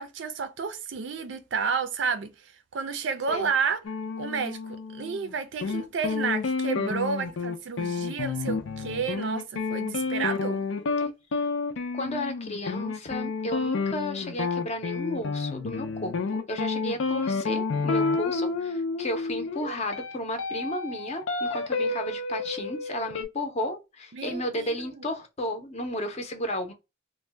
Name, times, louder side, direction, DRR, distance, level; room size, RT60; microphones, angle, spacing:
voice 1, 0.0-3.8 4.2-10.6 24.1-25.1, right 5 dB, 65° right, 0.5 m, -31 dB
sound 1, 3.8-5.3 5.6-23.2, left 4 dB, 80° left, 0.5 m, -30 dB
voice 2, 11.9-26.7, left 1 dB, 35° left, 0.6 m, -33 dB
2.6 x 2.1 x 3.3 m
head